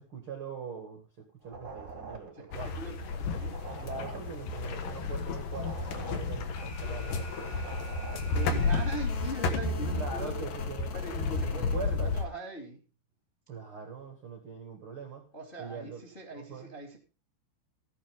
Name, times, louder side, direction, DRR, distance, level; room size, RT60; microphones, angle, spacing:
voice 1, 0.0-2.7 3.8-7.7 9.9-12.2 13.5-15.2 15.6-16.0 16.3-16.7, right 5 dB, 65° right, 4 dB, 1.3 m, -42 dB
sound 1, 1.4-3.2 3.4-7.2 7.4-8.8, right 3 dB, 30° right, 1.4 m, -46 dB
voice 2, 2.3-3.6 8.3-10.5 10.9-12.8 15.3-17.0, right 1 dB, 15° left, 2 dB, 1.7 m, -41 dB
sound 2, 2.5-12.2, left 4 dB, 70° left, 2.2 m, -32 dB
Alarm, 6.5-9.5, left 1 dB, 85° left, 7.7 m, -49 dB
14.5 x 11.0 x 3.6 m, 0.33 s
omnidirectional pair, 5.9 m